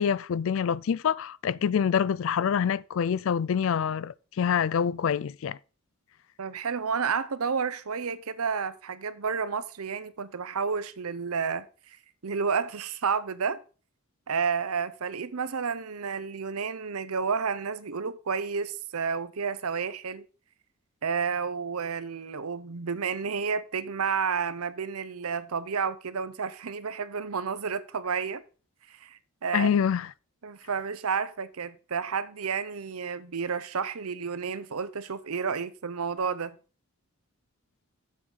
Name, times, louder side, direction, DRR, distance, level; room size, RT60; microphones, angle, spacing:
voice 1, 0.0-5.6 29.5-30.1, left 7 dB, 65° left, 0.3 m, -26 dB
voice 2, 6.4-12.0 12.2-13.6 14.3-20.2 21.0-28.4 28.9-29.7 30.4-36.6, right 5 dB, 85° right, 0.7 m, -31 dB
7.5 x 6.4 x 5.4 m
head